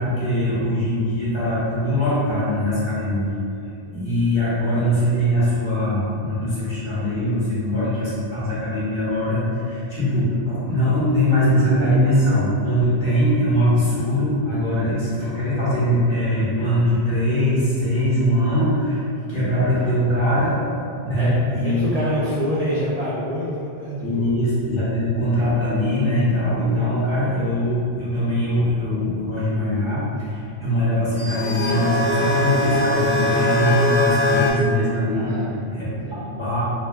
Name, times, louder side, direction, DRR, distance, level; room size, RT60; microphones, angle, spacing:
voice 1, 0.0-3.4 3.8-19.0 19.3-20.6 21.0-21.8 24.0-35.3 35.7-35.9 36.3-36.6, equal, 25° left, -11 dB, 1.1 m, -21 dB
voice 2, 19.7-20.2 21.1-21.3 21.6-24.3 35.1-36.6, equal, 55° right, -7 dB, 0.4 m, -27 dB
sound 1, 31.2-34.5, left 2 dB, 80° left, 0.9 m, -21 dB
4.5 x 2.5 x 2.3 m, 2.6 s
omnidirectional pair, 1.1 m